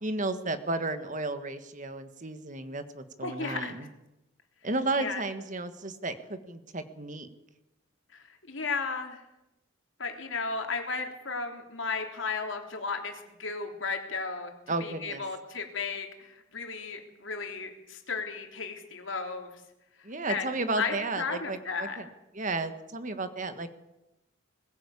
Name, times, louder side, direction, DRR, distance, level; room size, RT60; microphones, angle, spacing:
voice 1, 0.0-3.9 4.6-7.3 14.7-15.2 20.0-22.0 22.3-23.7, right 2 dB, 40° right, 10 dB, 1.7 m, -33 dB
voice 2, 3.2-3.7 5.0-5.2 8.1-9.2 10.0-14.5 14.8-19.5 20.3-20.5 20.8-22.0, left 4 dB, 70° left, 4 dB, 3.4 m, -34 dB
20.5 x 16.0 x 8.5 m, 0.94 s
head